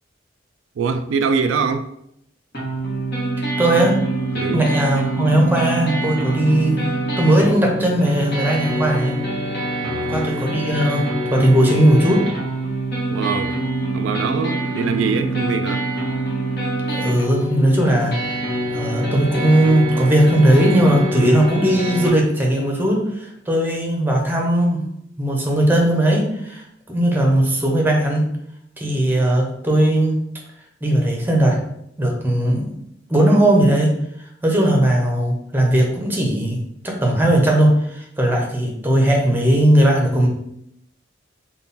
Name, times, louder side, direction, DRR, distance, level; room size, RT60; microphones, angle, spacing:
voice 1, 0.8-1.9 4.3-4.7 9.8-10.3 13.1-13.6 13.9-15.9, right 5 dB, 85° right, 9 dB, 0.3 m, -23 dB
sound 1, 2.5-22.1, right 1 dB, 55° left, 1.3 m, -25 dB
voice 2, 3.6-4.0 4.5-6.8 7.2-9.2 10.1-12.3 16.9-18.4 18.7-24.8 25.2-28.3 28.8-30.2 30.8-31.6 32.0-32.7 33.1-34.0 34.4-36.6 36.8-40.3, right 1 dB, 10° right, 0 dB, 0.7 m, -18 dB
3.7 x 2.3 x 4.0 m, 0.74 s
head